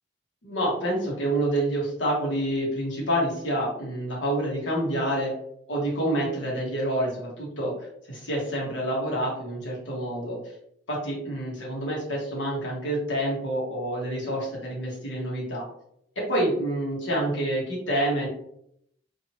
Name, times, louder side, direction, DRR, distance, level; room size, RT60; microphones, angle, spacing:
voice 1, 0.4-5.3 5.7-10.4 10.9-15.7 16.3-18.3, right 1 dB, 85° left, -3 dB, 1.0 m, -28 dB
2.9 x 2.5 x 2.8 m, 0.72 s
head